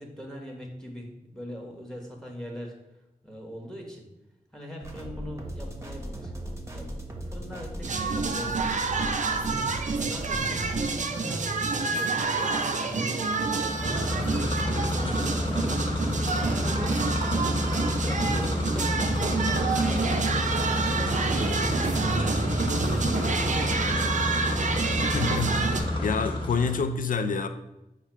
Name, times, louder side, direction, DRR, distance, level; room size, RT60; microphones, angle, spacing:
voice 1, 0.0-2.8 3.2-4.1 4.5-6.3 6.7-9.6 10.0-16.0 16.3-21.5 21.9-24.2, equal, 5° left, 1.0 m, -41 dB
sound 1, 4.8-11.0, right 1 dB, 20° right, 0.8 m, -38 dB
sound 2, 7.8-25.8, right 4 dB, 55° right, 0.5 m, -28 dB
sound 3, 13.5-26.9, left 1 dB, 35° left, 1.0 m, -29 dB
voice 2, 25.0-27.5, left 4 dB, 65° left, 0.4 m, -28 dB
4.8 x 2.3 x 4.4 m
cardioid pair, 50°, 15 cm